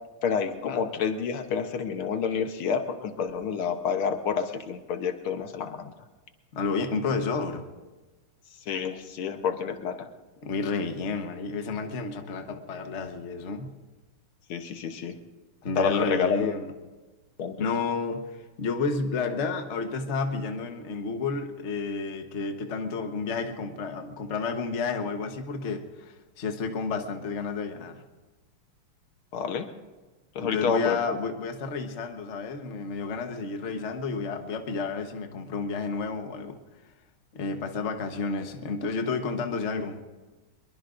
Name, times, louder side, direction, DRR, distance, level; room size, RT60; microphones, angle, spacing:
voice 1, 0.2-5.9 8.7-10.1 14.5-15.2 15.8-16.5 17.4-17.6 29.3-29.7 30.4-31.0, left 6 dB, 75° left, 7 dB, 1.8 m, -28 dB
voice 2, 6.5-7.6 10.4-13.7 15.6-16.7 17.6-28.0 30.4-36.6 37.3-40.0, left 4 dB, 40° left, 5 dB, 1.2 m, -31 dB
24.0 x 22.0 x 2.6 m, 1.2 s
omnidirectional pair, 2.4 m